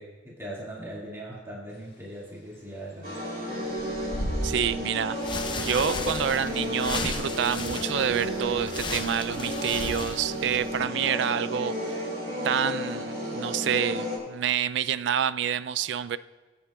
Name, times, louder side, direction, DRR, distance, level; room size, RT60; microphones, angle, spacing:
voice 1, 0.0-3.2, right 1 dB, 15° right, -6 dB, 2.0 m, -40 dB
Bird / Wind, 1.7-10.4, equal, 60° left, 1.5 m, -39 dB
sound 1, 3.0-14.2, equal, 50° right, 3.1 m, -32 dB
voice 2, 4.4-5.2 5.6-12.1 12.4-16.2, right 8 dB, 65° right, 14 dB, 0.3 m, -28 dB
sound 2, 5.1-10.8, left 3 dB, 25° left, 0.7 m, -35 dB
21.5 x 8.5 x 2.3 m, 1.3 s
head